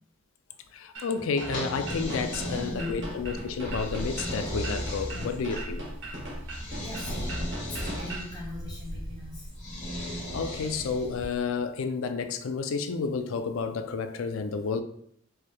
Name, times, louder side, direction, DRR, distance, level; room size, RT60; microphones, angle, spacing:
voice 1, 0.7-5.8 10.3-14.8, left 5 dB, 70° left, 9 dB, 0.4 m, -31 dB
sound 1, 0.9-8.3, right 1 dB, 60° right, 1.2 m, -40 dB
sound 2, 1.4-3.0 3.6-5.7 6.5-8.4 9.6-11.2, left 1 dB, 35° left, 1.5 m, -36 dB
sound 3, 1.9-11.4, equal, 25° right, 0.7 m, -40 dB
voice 2, 2.5-3.1 5.1-5.3 6.7-9.5, left 1 dB, 20° left, -5 dB, 1.1 m, -40 dB
4.6 x 3.1 x 2.2 m, 0.65 s
head